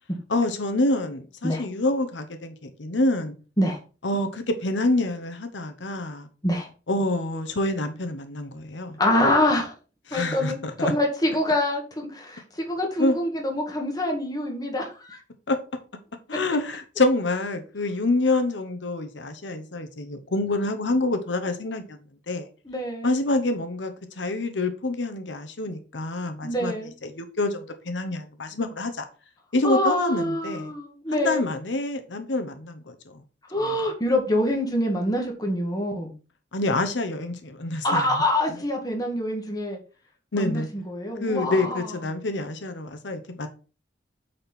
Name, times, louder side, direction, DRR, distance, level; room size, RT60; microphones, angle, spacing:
voice 1, 0.3-3.3 4.0-6.3 6.9-9.0 10.1-10.9 13.0-13.2 15.5-15.6 16.3-22.0 22.3-22.5 23.0-26.7 27.0-29.1 29.5-30.7 31.1-33.2 33.7-33.8 36.5-38.2 38.5-38.6 40.3-40.7 41.2-43.5, left 2 dB, 85° left, 1.0 m, -27 dB
voice 2, 9.0-9.7 10.1-12.4 12.7-15.2 22.7-23.1 26.4-26.9 29.6-31.4 33.5-36.1 37.8-39.8 40.3-41.8, left 1 dB, 20° left, 1.9 m, -25 dB
8.7 x 4.3 x 4.4 m
head